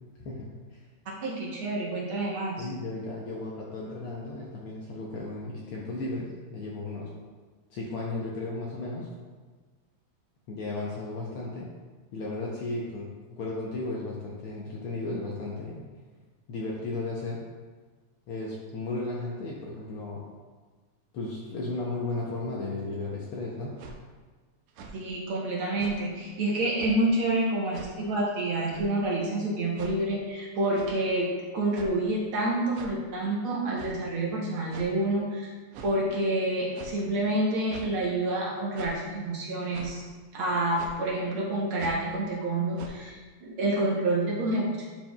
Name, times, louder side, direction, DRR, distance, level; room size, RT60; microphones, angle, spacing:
voice 1, 0.2-0.9 2.6-7.1 7.7-9.1 10.5-11.7 12.1-15.9 16.5-17.5 18.3-20.3 21.1-23.8, left 2 dB, 75° left, -4 dB, 1.3 m, -35 dB
voice 2, 1.2-2.7 24.9-35.5 35.8-40.0 40.3-44.8, right 1 dB, 65° right, -4 dB, 1.4 m, -28 dB
sound 1, 23.8-24.0 24.7-25.0 25.8-26.0 26.8-27.0 27.7-27.9 28.7-28.9 29.8-30.0 30.7-31.0 31.7-32.1 32.7-33.0 33.8-34.0 34.7-34.9 35.7-36.0 36.7-37.0 37.7-37.9 38.7-39.0 39.7-39.9 40.8-41.0 41.7-42.1 42.8-42.9, right 4 dB, 90° right, 1.3 m, -43 dB
10.0 x 4.4 x 2.3 m, 1.4 s
omnidirectional pair, 3.3 m